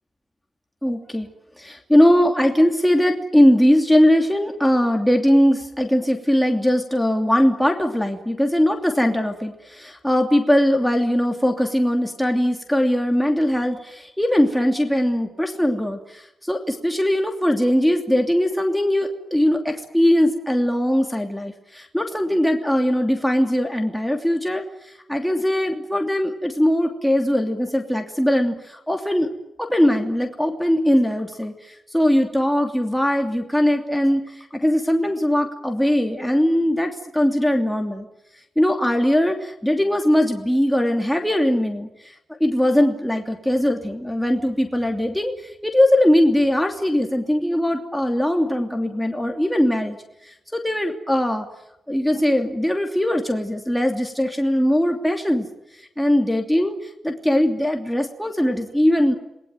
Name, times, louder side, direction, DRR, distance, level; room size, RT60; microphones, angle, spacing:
voice 1, 0.8-1.3 1.6-29.3 29.6-38.1 38.6-42.1 42.4-50.0 50.2-51.4 51.9-55.5 55.7-59.1, equal, 5° left, 3 dB, 2.9 m, -20 dB
29.0 x 20.5 x 9.3 m, 0.87 s
cardioid pair, 110°, 0 cm